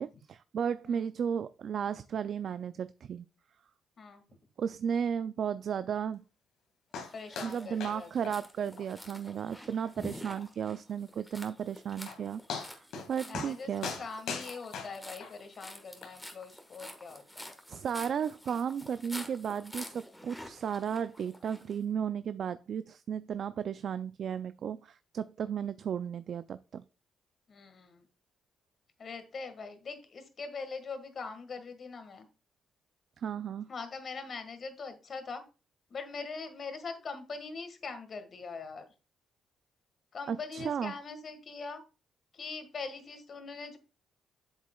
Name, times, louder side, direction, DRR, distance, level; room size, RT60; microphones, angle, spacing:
voice 1, 0.0-3.3 4.6-6.2 7.4-13.9 17.7-26.8 33.2-33.7 40.3-40.9, right 8 dB, 60° right, 14 dB, 0.3 m, -34 dB
sound 1, 6.9-7.1 7.4-7.5 7.8-8.0 8.2-8.4 8.8-8.9 9.3-9.4 9.8-9.9 11.6-11.7 12.1-12.2 12.5-13.1 13.3-13.5 13.8-15.3 16.0-16.1, left 5 dB, 80° left, 1.9 m, -39 dB
sound 2, 7.0-21.8, left 1 dB, 5° left, 1.4 m, -49 dB
voice 2, 7.1-8.3 13.2-17.5 27.5-28.1 29.0-32.3 33.7-35.4 35.9-38.9 40.1-41.8 42.3-43.8, left 4 dB, 50° left, 9 dB, 1.6 m, -42 dB
8.1 x 7.3 x 2.3 m, 0.32 s
cardioid pair, 90°, 0 cm